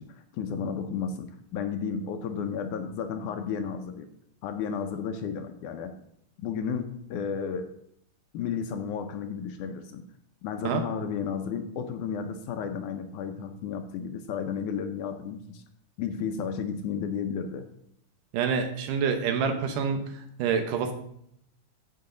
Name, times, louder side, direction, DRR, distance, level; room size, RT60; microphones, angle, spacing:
voice 1, 0.0-4.1 4.4-6.0 6.4-7.7 8.3-10.0 10.4-15.6 16.0-17.7, left 6 dB, 75° left, 7 dB, 2.0 m, -33 dB
voice 2, 18.3-20.0 20.4-20.9, right 6 dB, 75° right, 6 dB, 2.5 m, -26 dB
14.5 x 5.6 x 3.9 m, 0.72 s
omnidirectional pair, 3.9 m